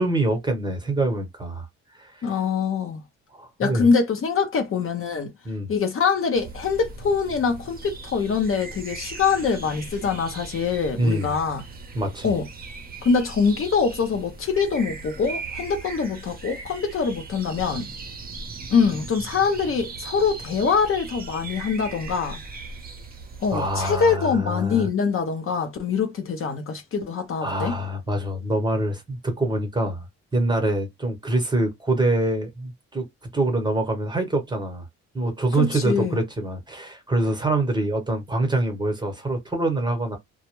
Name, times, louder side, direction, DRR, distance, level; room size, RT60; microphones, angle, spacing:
voice 1, 0.0-1.7 1.9-2.3 3.3-3.9 5.4-5.7 11.0-11.4 11.9-12.3 23.5-24.9 27.4-30.0 30.3-33.0 33.3-34.9 35.1-40.2, right 1 dB, 15° right, 1.0 m, -25 dB
voice 2, 2.2-3.0 3.6-5.3 5.7-11.6 12.2-12.4 13.0-17.9 18.7-22.4 23.4-27.8 35.6-36.2, left 5 dB, 45° left, 0.7 m, -24 dB
sound 1, 6.3-24.1, right 4 dB, 30° right, 0.7 m, -39 dB
2.1 x 2.0 x 3.0 m
cardioid pair, 90°, 30 cm